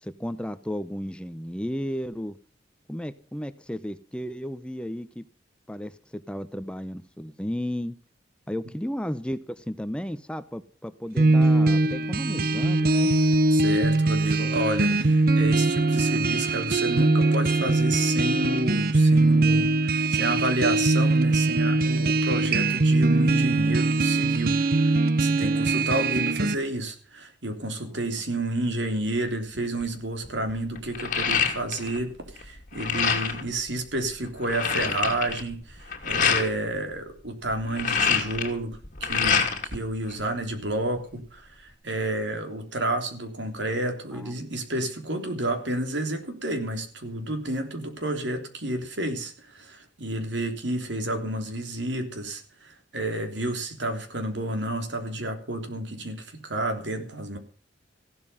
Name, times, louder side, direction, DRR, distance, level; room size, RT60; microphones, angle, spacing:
voice 1, 0.0-2.4 2.9-5.3 5.7-8.0 8.5-13.1 27.8-28.0 44.1-44.3, equal, 5° left, 13 dB, 0.6 m, -33 dB
sound 1, 11.2-26.5, right 2 dB, 50° right, 1.0 m, -22 dB
voice 2, 13.5-57.4, right 1 dB, 75° right, 6 dB, 3.3 m, -30 dB
sound 2, 29.5-29.8 30.2-32.0 32.3-33.5 34.0-34.1 34.3-36.5 37.5-39.8 40.1-41.0, left 6 dB, 45° left, 2.7 m, -26 dB
15.5 x 12.5 x 5.5 m, 0.40 s
head